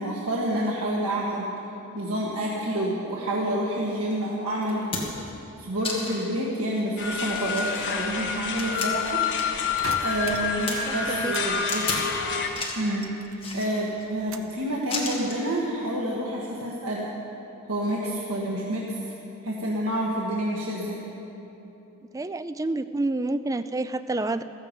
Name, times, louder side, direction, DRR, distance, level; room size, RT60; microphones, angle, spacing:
voice 1, 0.0-1.5 1.9-5.1 5.6-9.2 10.0-11.9 12.7-17.1 17.7-19.0 19.4-21.0, right 1 dB, 85° right, -4 dB, 1.6 m, -28 dB
sound 1, 4.1-4.2 4.6-5.3 5.8-6.3 6.8-6.9 7.3-9.7 10.0-10.8 11.7-12.1 12.4-12.9 13.4-14.1 14.9-15.4 16.5-16.7, left 3 dB, 25° left, 1.9 m, -34 dB
sound 2, 7.0-12.5, left 5 dB, 55° left, 1.3 m, -28 dB
sound 3, 9.8-11.5 11.7-13.5 13.8-14.6 15.1-15.6, right 5 dB, 60° right, 0.7 m, -40 dB
voice 2, 10.9-11.3 22.1-24.4, right 2 dB, 15° right, 11 dB, 0.3 m, -28 dB
15.0 x 14.0 x 5.2 m, 3.0 s
head